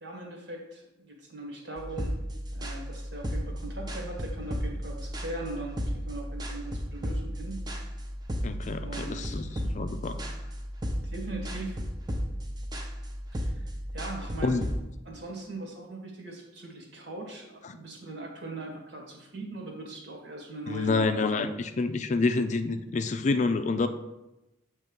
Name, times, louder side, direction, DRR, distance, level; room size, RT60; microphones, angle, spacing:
voice 1, 0.0-2.1 2.5-7.6 8.8-9.4 11.0-11.8 13.3-14.6 15.0-21.4, right 2 dB, 65° right, 0 dB, 1.5 m, -40 dB
sound 1, 1.8-14.8, equal, 25° right, 0.7 m, -34 dB
voice 2, 8.4-9.5 9.7-10.2 14.4-14.6 20.7-23.9, left 3 dB, 40° left, 9 dB, 0.4 m, -27 dB
7.1 x 3.2 x 5.2 m, 0.95 s
head